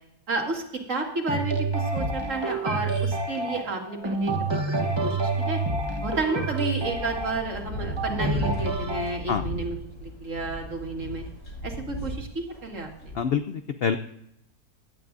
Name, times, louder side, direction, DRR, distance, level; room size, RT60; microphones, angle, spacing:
voice 1, 0.3-5.6 6.0-11.2 11.6-13.1, right 3 dB, 50° right, 1 dB, 2.3 m, -31 dB
sound 1, 1.3-9.2, right 3 dB, 20° right, 0.8 m, -28 dB
sound 2, 4.1-4.3 6.3-13.2, equal, 60° left, 2.7 m, -35 dB
voice 2, 13.1-14.0, left 7 dB, 75° left, 8 dB, 0.5 m, -26 dB
17.0 x 11.0 x 2.6 m, 0.78 s
omnidirectional pair, 1.7 m